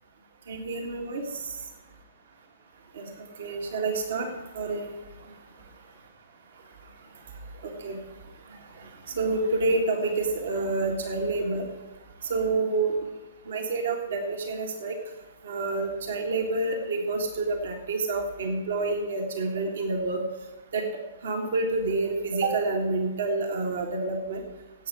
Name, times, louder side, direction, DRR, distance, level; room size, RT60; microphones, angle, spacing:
voice 1, 0.5-1.6 2.9-3.1 3.4-4.9 7.6-8.0 8.8-8.9 9.2-11.6 12.3-12.9 13.5-15.0 15.4-20.2 20.7-20.8 21.2-24.4, right 3 dB, 55° right, 3 dB, 1.9 m, -28 dB
17.0 x 8.4 x 4.9 m, 1.1 s
figure-of-eight pair, 115°, 0 cm